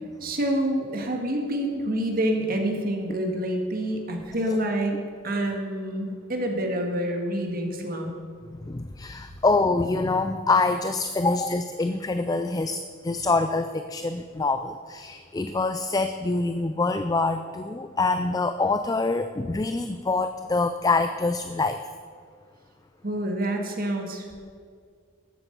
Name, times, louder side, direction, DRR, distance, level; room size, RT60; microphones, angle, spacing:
voice 1, 0.2-8.1 23.0-24.3, right 1 dB, 45° right, 2 dB, 1.7 m, -27 dB
voice 2, 8.5-21.8, left 3 dB, 20° left, 9 dB, 0.3 m, -25 dB
13.5 x 7.9 x 6.7 m, 2.1 s
head